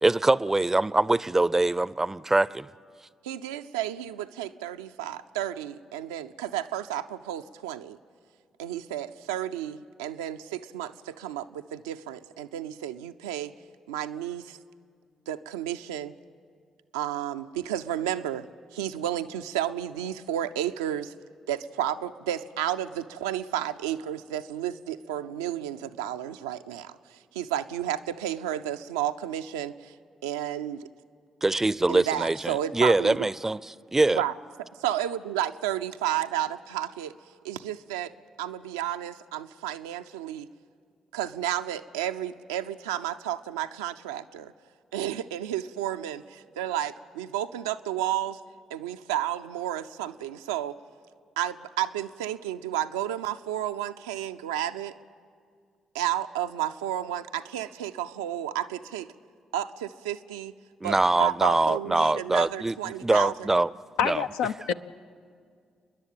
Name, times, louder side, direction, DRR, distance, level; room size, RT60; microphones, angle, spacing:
voice 1, 0.0-2.7 31.4-34.2 60.8-63.7 64.0-64.3, right 2 dB, 20° right, 0.5 m, -23 dB
voice 2, 3.3-8.0 8.6-13.5 13.9-14.6 15.3-16.1 16.9-18.5 18.7-21.1 21.5-29.9 30.2-30.9 31.9-33.3 34.1-34.3 34.8-37.2 37.4-38.1 38.4-40.5 41.1-44.5 44.9-48.4 48.7-50.7 51.4-54.9 55.9-59.1 59.5-60.5 60.8-63.5, right 11 dB, 85° right, 0.5 m, -32 dB
voice 3, 64.0-64.7, left 8 dB, 75° left, 0.5 m, -27 dB
30.0 x 11.0 x 9.2 m
hypercardioid pair, 40°, 2 cm